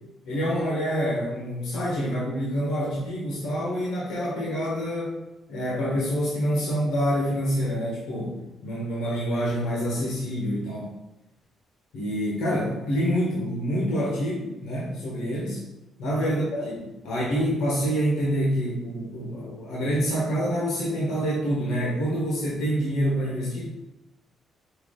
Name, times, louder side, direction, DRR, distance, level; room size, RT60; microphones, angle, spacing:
voice 1, 0.2-5.2 5.5-10.9 11.9-15.6 16.0-23.7, equal, 85° left, -5 dB, 1.3 m, -27 dB
4.7 x 2.8 x 3.8 m, 0.93 s
cardioid pair, 90°, 0 cm